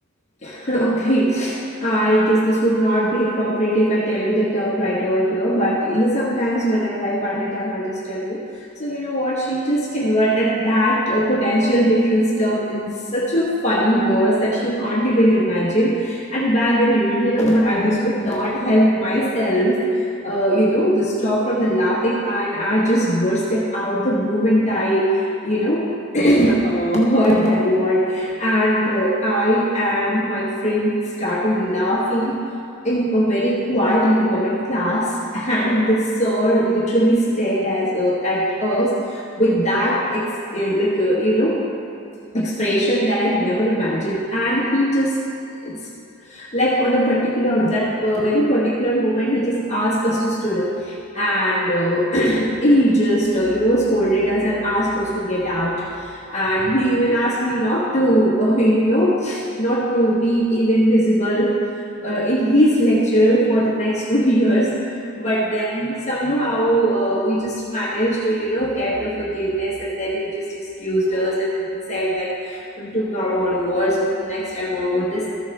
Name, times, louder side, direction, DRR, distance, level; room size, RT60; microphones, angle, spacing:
voice 1, 0.4-32.4 32.8-41.6 42.3-45.2 45.6-45.8 46.3-61.6 62.0-75.3, equal, 30° left, -5 dB, 1.2 m, -20 dB
14.0 x 7.0 x 3.2 m, 2.6 s
head